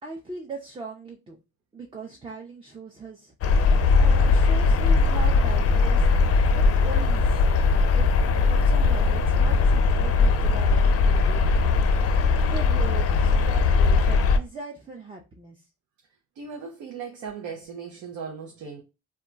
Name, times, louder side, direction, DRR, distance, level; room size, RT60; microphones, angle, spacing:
voice 1, 0.0-1.4 1.7-3.3 4.0-6.1 6.5-7.5 7.9-11.8 12.1-15.6, right 3 dB, 15° right, 0.5 m, -40 dB
sound 1, 3.4-14.4, left 4 dB, 50° left, 0.4 m, -20 dB
voice 2, 16.4-18.8, right 6 dB, 80° right, 0.6 m, -37 dB
2.2 x 2.2 x 3.7 m
cardioid pair, 90°, 30 cm